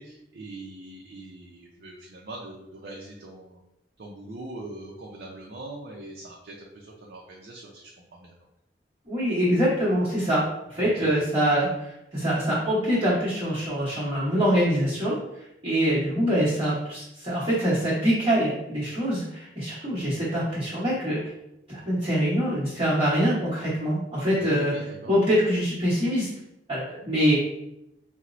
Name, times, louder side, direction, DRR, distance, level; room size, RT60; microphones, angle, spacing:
voice 1, 0.0-3.6 4.0-8.3 10.8-11.1 24.4-25.1, right 2 dB, 55° right, -1 dB, 0.5 m, -42 dB
voice 2, 9.1-10.4 10.7-15.1 15.6-21.2 21.7-24.7 25.0-26.3 26.7-27.4, equal, 30° right, -11 dB, 1.0 m, -24 dB
4.3 x 2.0 x 2.5 m, 0.83 s
head